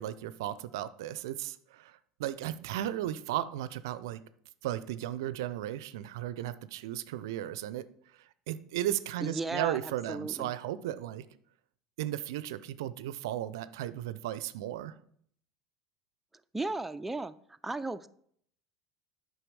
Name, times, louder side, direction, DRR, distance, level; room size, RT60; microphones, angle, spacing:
voice 1, 0.0-4.2 4.6-7.8 8.2-11.2 12.0-14.9, right 12 dB, 70° right, 16 dB, 0.5 m, -35 dB
voice 2, 9.2-9.8 10.1-10.5 16.5-17.3 17.6-18.1, right 2 dB, 10° right, 10 dB, 0.4 m, -35 dB
8.9 x 5.7 x 4.7 m, 0.64 s
hypercardioid pair, 75°, 2 cm